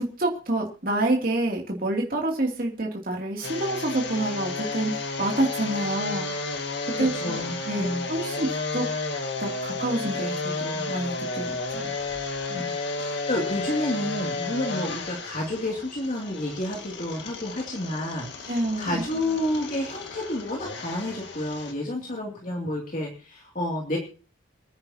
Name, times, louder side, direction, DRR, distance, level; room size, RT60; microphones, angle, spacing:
voice 1, 0.0-6.3 7.0-7.4 7.6-8.9 9.4-11.9 12.5-12.6 18.5-19.0, right 1 dB, 45° right, -1 dB, 2.8 m, -28 dB
sound 1, 3.4-21.7, left 3 dB, 65° left, 2.0 m, -32 dB
voice 2, 7.0-8.1 12.5-24.0, left 1 dB, 40° left, -1 dB, 2.7 m, -30 dB
27.0 x 9.8 x 2.9 m, 0.37 s
head